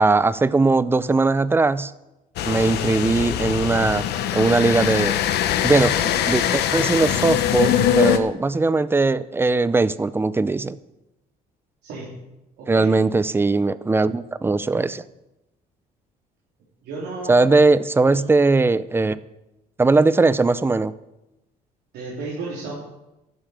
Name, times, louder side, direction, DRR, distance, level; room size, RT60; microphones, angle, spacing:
voice 1, 0.0-1.9 2.4-4.0 4.3-5.2 5.6-10.8 12.7-15.0 17.3-19.2 19.8-20.9, right 3 dB, 15° right, 17 dB, 0.5 m, -19 dB
sound 1, 2.4-8.2, left 10 dB, 75° left, 1.0 m, -22 dB
voice 2, 11.8-12.2 12.6-13.1 16.8-17.4 18.0-18.3 21.9-22.7, right 3 dB, 80° right, -6 dB, 3.6 m, -34 dB
12.0 x 7.3 x 8.6 m, 0.94 s
cardioid pair, 110°, 17 cm